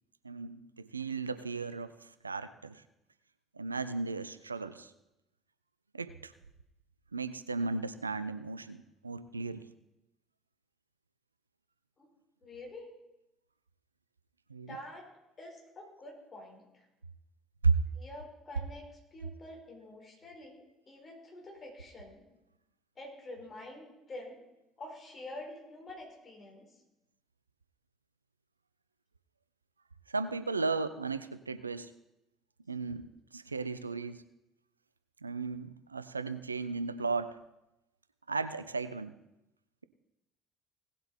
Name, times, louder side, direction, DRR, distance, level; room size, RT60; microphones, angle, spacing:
voice 1, 0.2-2.8 3.6-4.9 5.9-6.3 7.1-9.7 14.5-14.7 17.6-17.8 30.1-31.9 32.7-33.0 33.3-34.2 35.2-37.4 38.3-39.1, right 4 dB, 90° right, 14 dB, 0.4 m, -35 dB
voice 2, 12.4-12.9 14.7-15.1 15.4-16.8 17.9-22.3 23.0-24.4 24.8-26.7, left 1 dB, 35° left, 0 dB, 4.2 m, -47 dB
17.5 x 7.8 x 4.1 m, 0.90 s
figure-of-eight pair, 55°, 0 cm